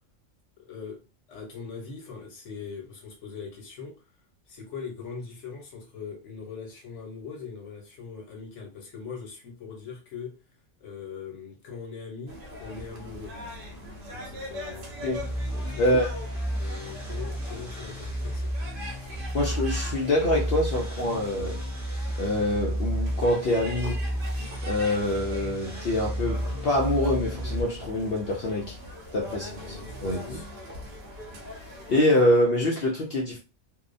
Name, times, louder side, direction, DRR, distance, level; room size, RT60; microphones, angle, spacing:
voice 1, 0.6-1.0 1.3-3.9 4.5-10.3 10.8-13.3 14.1-14.9 15.5-16.0 16.6-18.5 29.3-30.7, left 5 dB, 80° left, 1.2 m, -41 dB
sound 1, 12.3-32.0, equal, 55° right, 0.7 m, -41 dB
sound 2, 15.1-27.6, equal, 15° right, 0.9 m, -32 dB
voice 2, 15.8-16.1 19.3-21.6 22.2-24.1 24.6-28.7 29.1-29.8 30.0-30.4 31.9-33.4, left 1 dB, 60° left, 0.7 m, -25 dB
2.7 x 2.0 x 2.5 m
omnidirectional pair, 1.2 m